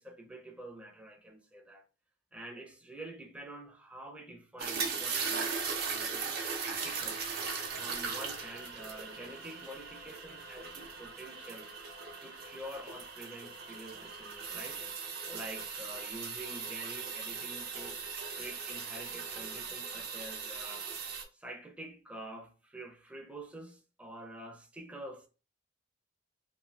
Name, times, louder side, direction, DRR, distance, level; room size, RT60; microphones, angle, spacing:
voice 1, 0.0-1.8 2.3-7.2 7.7-11.7 12.2-14.8 15.3-18.0 18.3-20.9 21.3-25.3, right 1 dB, 5° right, 0.5 m, -47 dB
sound 1, 4.6-21.2, right 5 dB, 55° right, 0.6 m, -39 dB
2.6 x 2.4 x 3.2 m
head